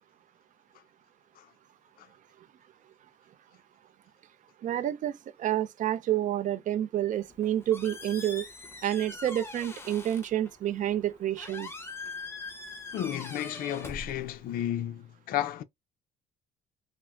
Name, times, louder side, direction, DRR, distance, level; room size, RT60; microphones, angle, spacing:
voice 1, 4.6-8.5 8.8-11.7, right 12 dB, 50° right, 0.5 m, -29 dB
Squeak, 7.2-14.7, left 3 dB, 15° left, 0.6 m, -43 dB
voice 2, 12.9-15.6, left 11 dB, 60° left, 0.4 m, -33 dB
3.3 x 2.0 x 2.3 m
cardioid pair, 110°, 17 cm